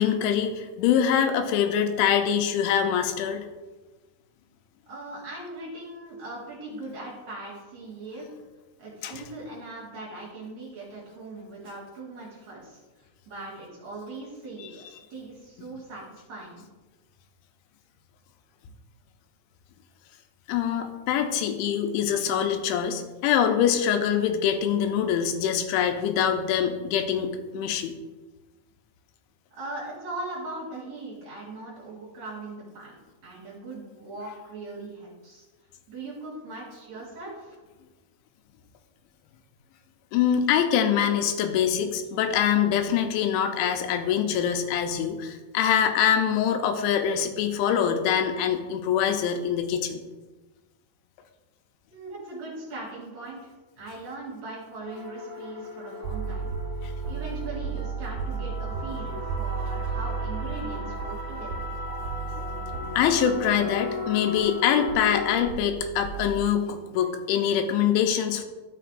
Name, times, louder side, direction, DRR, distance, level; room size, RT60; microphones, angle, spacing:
voice 1, 0.0-3.5 9.0-9.2 14.6-14.7 20.5-27.9 40.1-50.0 56.8-56.9 62.4-62.5 63.0-68.4, left 8 dB, 80° left, 6 dB, 3.0 m, -24 dB
voice 2, 4.9-8.3 8.8-12.8 13.3-14.8 15.1-16.7 29.5-35.4 35.9-37.6 51.9-56.5 57.1-61.7, right 2 dB, 55° right, -5 dB, 2.2 m, -40 dB
sound 1, 54.8-65.4, left 3 dB, 35° left, 1.7 m, -36 dB
sound 2, 56.0-64.5 64.9-66.5, right 5 dB, 90° right, 3.1 m, -34 dB
12.5 x 5.6 x 2.5 m, 1.2 s
omnidirectional pair, 5.4 m